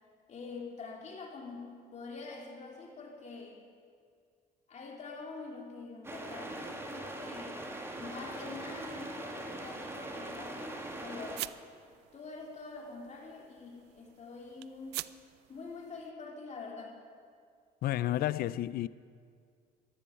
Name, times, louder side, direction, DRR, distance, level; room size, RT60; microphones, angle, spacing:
voice 1, 0.3-3.6 4.7-7.6 7.9-11.4 12.1-15.0 15.5-17.0, left 4 dB, 40° left, 3.0 m, -45 dB
sound 1, 6.0-11.4, right 1 dB, 15° right, 1.7 m, -41 dB
sound 2, 8.3-16.1, right 18 dB, 80° right, 0.4 m, -48 dB
voice 2, 17.8-18.9, left 13 dB, 60° left, 0.4 m, -31 dB
14.0 x 13.5 x 5.7 m
cardioid pair, 110°, 17 cm